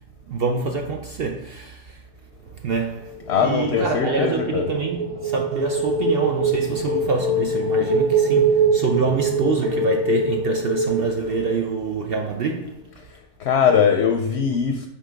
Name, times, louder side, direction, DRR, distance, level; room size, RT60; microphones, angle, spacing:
voice 1, 0.3-2.0 2.6-12.8, right 4 dB, 65° right, 0.5 m, -26 dB
sound 1, 3.0-11.9, right 2 dB, 90° right, 1.4 m, -23 dB
voice 2, 3.3-4.7 13.4-14.9, left 7 dB, 65° left, 0.7 m, -20 dB
5.5 x 3.6 x 5.1 m
omnidirectional pair, 1.5 m